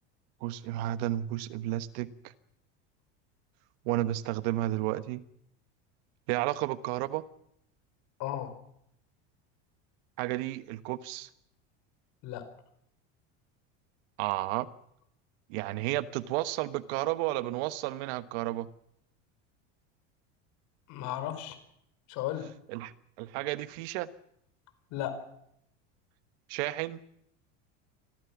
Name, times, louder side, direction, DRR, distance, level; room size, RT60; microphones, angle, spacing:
voice 1, 0.4-2.1 3.8-5.2 6.3-7.2 10.2-11.3 14.2-14.7 15.5-18.7 22.7-22.9 23.2-24.1 26.5-27.0, right 16 dB, 70° right, 1.3 m, -32 dB
voice 2, 8.2-8.5 12.2-12.5 20.9-21.6 22.1-22.5 24.9-25.2, left 12 dB, 60° left, 4.7 m, -34 dB
25.0 x 15.5 x 7.3 m
supercardioid pair, 120°, 33 cm